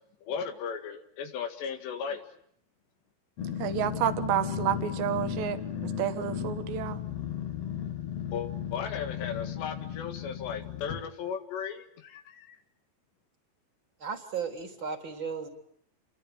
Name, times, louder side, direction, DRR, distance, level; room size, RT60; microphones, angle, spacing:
voice 1, 0.3-2.2 8.3-12.6, left 7 dB, 80° left, 5 dB, 4.2 m, -36 dB
Growling, 3.4-11.1, left 8 dB, 45° left, 2.5 m, -35 dB
voice 2, 3.6-7.0, right 11 dB, 85° right, 10 dB, 3.7 m, -30 dB
voice 3, 14.0-15.5, right 6 dB, 30° right, 5 dB, 3.9 m, -35 dB
30.0 x 23.0 x 8.7 m, 0.70 s
omnidirectional pair, 4.9 m